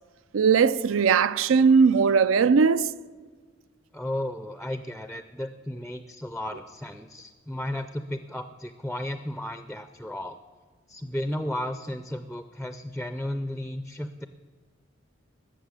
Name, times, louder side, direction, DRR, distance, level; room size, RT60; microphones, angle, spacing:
voice 1, 0.3-2.9, right 5 dB, 85° right, 0.4 m, -19 dB
voice 2, 3.9-10.4 10.9-14.3, left 1 dB, 5° left, 0.4 m, -34 dB
14.0 x 6.7 x 9.7 m
head